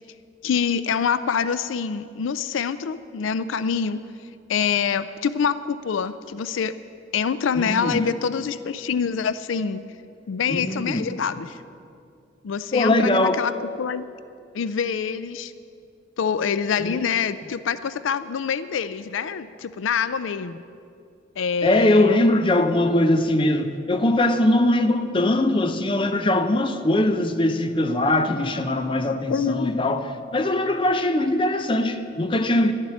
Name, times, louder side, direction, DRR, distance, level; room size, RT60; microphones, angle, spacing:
voice 1, 0.4-4.0 4.5-6.7 7.1-9.8 10.3-11.6 12.4-14.1 14.5-15.5 16.2-20.6 21.4-22.2 29.3-29.7, left 6 dB, 80° left, 0.4 m, -25 dB
voice 2, 7.6-8.0 10.5-11.1 12.7-13.4 16.8-17.0 21.6-32.7, left 1 dB, 25° left, 0.6 m, -21 dB
11.5 x 7.4 x 9.7 m
head